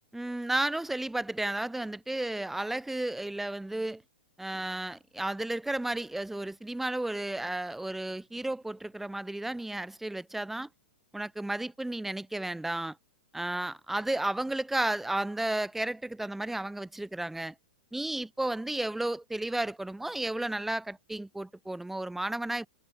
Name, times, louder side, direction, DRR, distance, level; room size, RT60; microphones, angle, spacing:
voice 1, 0.1-4.0 4.4-10.7 11.1-13.0 13.3-17.5 17.9-22.7, right 1 dB, 5° right, 3.8 m, -33 dB
hypercardioid pair, 115°, 6 cm